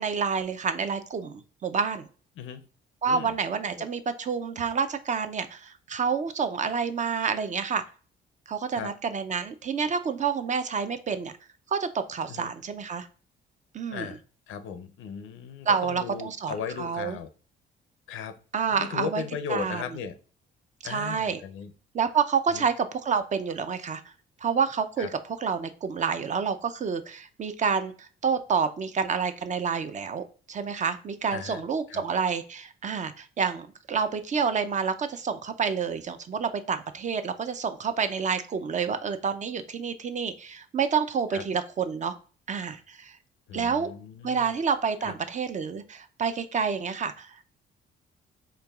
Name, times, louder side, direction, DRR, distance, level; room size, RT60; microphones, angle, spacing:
voice 1, 0.0-2.1 3.0-7.8 8.5-11.4 11.7-13.1 13.7-14.2 15.7-17.2 18.5-19.2 19.5-19.8 20.8-21.4 21.9-24.0 24.4-42.1 42.5-43.2 43.5-43.9 44.2-47.5, right 6 dB, 40° right, 10 dB, 0.4 m, -28 dB
voice 2, 2.4-2.7 3.1-3.3 8.7-8.9 12.3-12.5 13.9-14.2 14.5-17.3 18.1-18.4 18.8-20.1 20.8-21.7 22.5-22.7 25.0-25.1 31.3-32.0 41.3-41.4 43.5-44.5 45.0-45.1, left 7 dB, 85° left, 9 dB, 0.5 m, -36 dB
4.5 x 2.9 x 2.3 m, 0.39 s
cardioid pair, 90°, 20 cm